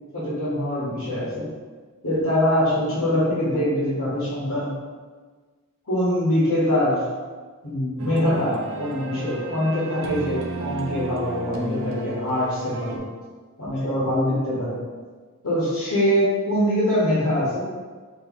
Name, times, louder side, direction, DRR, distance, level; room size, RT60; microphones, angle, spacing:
voice 1, 0.1-1.5 2.0-4.7 5.9-7.0 7.6-13.0 13.6-14.8 15.4-17.6, equal, 75° left, -9 dB, 1.4 m, -23 dB
sound 1, 8.0-13.0, right 2 dB, 65° right, 0.5 m, -33 dB
4.1 x 3.1 x 3.0 m, 1.4 s
head